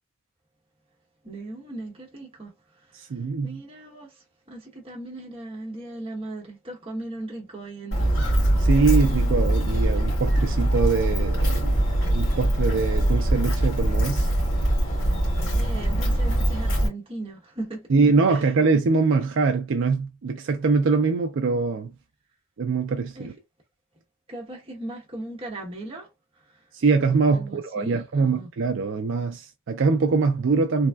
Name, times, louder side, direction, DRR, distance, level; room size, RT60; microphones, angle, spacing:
voice 1, 1.2-8.7 15.5-17.9 18.3-18.5 23.1-23.3 24.3-26.7 27.3-28.5, right 2 dB, 25° right, 1.0 m, -38 dB
voice 2, 2.9-3.6 8.6-14.3 17.9-21.9 22.6-23.3 26.7-30.9, right 4 dB, 60° right, 0.4 m, -23 dB
Walk footsteps, 7.9-16.9, right 1 dB, 65° left, 1.8 m, -22 dB
3.4 x 2.2 x 2.2 m
head